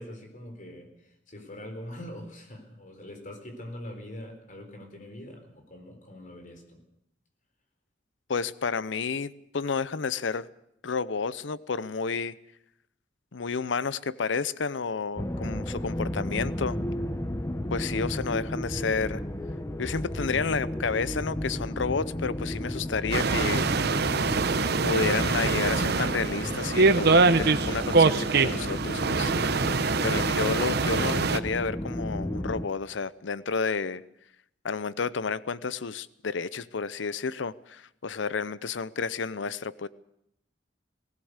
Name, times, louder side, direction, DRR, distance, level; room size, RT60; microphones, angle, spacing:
voice 1, 0.0-6.8, left 1 dB, 45° left, 4.1 m, -43 dB
voice 2, 8.3-10.5 10.8-12.4 13.3-16.8 17.7-19.2 19.8-23.9 24.8-29.3 30.0-34.0 34.6-39.9, left 5 dB, 90° left, 0.7 m, -31 dB
sound 1, 15.2-32.7, left 1 dB, 15° left, 1.0 m, -33 dB
sound 2, 23.1-31.4, right 4 dB, 60° right, 0.9 m, -24 dB
19.0 x 17.0 x 8.1 m
head